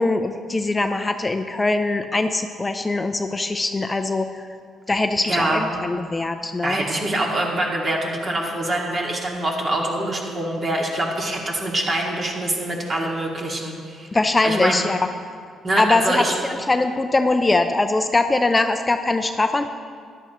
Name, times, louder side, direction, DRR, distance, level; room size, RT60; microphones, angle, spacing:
voice 1, 0.0-4.4 4.9-6.8 14.1-15.0 15.8-19.7, left 2 dB, 20° left, 7 dB, 0.5 m, -22 dB
voice 2, 5.2-5.7 6.6-14.1 14.4-14.8 15.6-16.3, right 1 dB, 40° right, -1 dB, 2.2 m, -24 dB
13.5 x 11.0 x 3.1 m, 2.1 s
cardioid pair, 90°, 0 cm